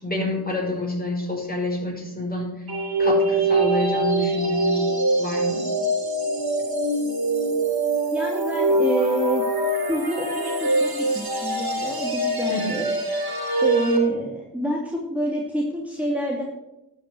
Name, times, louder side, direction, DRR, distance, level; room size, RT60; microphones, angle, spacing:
voice 1, 0.0-2.7 3.0-4.9 5.2-5.7 12.5-12.7, left 1 dB, 20° left, -2 dB, 5.5 m, -28 dB
sound 1, 2.7-14.0, right 2 dB, 65° right, 2.6 m, -23 dB
voice 2, 8.1-9.5 9.9-12.8 13.6-16.4, equal, 5° right, -3 dB, 2.5 m, -27 dB
11.5 x 6.1 x 7.9 m, 0.91 s
cardioid pair, 40°, 40 cm